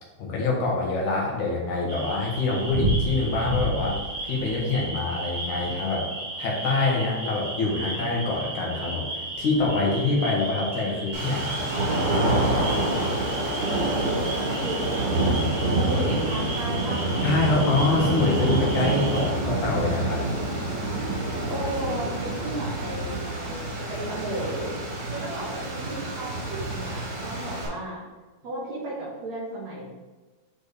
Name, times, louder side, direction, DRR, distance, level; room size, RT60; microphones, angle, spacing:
voice 1, 0.2-4.0 4.2-6.1 6.4-11.7 17.2-20.3, left 3 dB, 85° left, -2 dB, 3.0 m, -25 dB
sound 1, 1.9-19.3, right 1 dB, 35° right, 0.6 m, -33 dB
sound 2, 11.1-27.7, right 2 dB, 85° right, 3.9 m, -27 dB
voice 2, 13.5-15.4 15.7-17.0 21.5-23.6 23.9-24.7 25.1-28.0 28.4-29.9, right 1 dB, 70° right, -6 dB, 3.7 m, -34 dB
10.5 x 4.5 x 3.5 m, 1.2 s
omnidirectional pair, 3.3 m